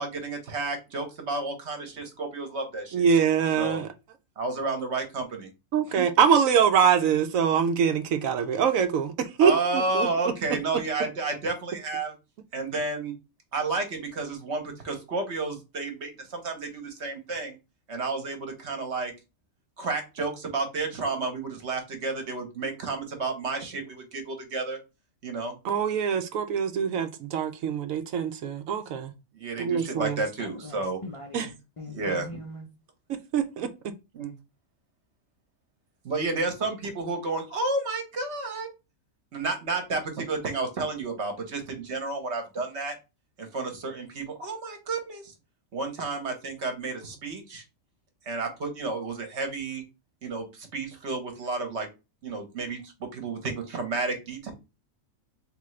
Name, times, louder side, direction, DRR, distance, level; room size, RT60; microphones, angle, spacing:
voice 1, 0.0-3.0 3.6-3.8 4.4-5.5 6.0-6.1 9.4-12.1 12.5-13.1 13.5-17.6 17.9-19.1 19.8-24.8 25.2-25.5 29.3-31.0 31.9-32.3 34.1-34.3 36.0-38.7 39.3-42.9 43.4-45.3 45.7-47.6 48.3-49.8 50.2-51.9 52.2-54.5, right 3 dB, 55° right, 1.2 m, -31 dB
voice 2, 2.9-3.9 5.7-10.1 25.6-29.1 29.6-30.2 31.3-31.5 33.1-33.7, right 7 dB, 75° right, 1.0 m, -24 dB
voice 3, 30.4-32.7, left 2 dB, 35° left, 0.6 m, -41 dB
3.7 x 3.4 x 3.2 m
omnidirectional pair, 1.4 m